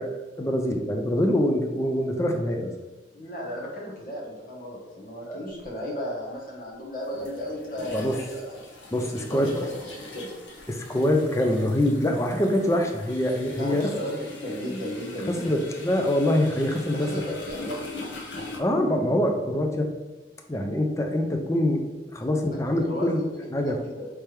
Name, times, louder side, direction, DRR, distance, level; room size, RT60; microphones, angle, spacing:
voice 1, 0.0-2.7 5.2-5.5 7.9-8.2 8.9-9.6 10.7-13.9 15.4-17.1 18.6-19.9 20.5-21.9 22.1-23.2 23.5-23.8, left 1 dB, 15° left, 4 dB, 0.4 m, -24 dB
voice 2, 3.1-8.5 9.2-10.3 13.6-15.6 16.9-17.9 22.5-24.1, equal, 50° left, -3 dB, 1.2 m, -35 dB
sound 1, 5.6-5.7 7.1-18.6, left 2 dB, 80° left, 1.0 m, -42 dB
3.3 x 3.3 x 4.5 m, 1.1 s
head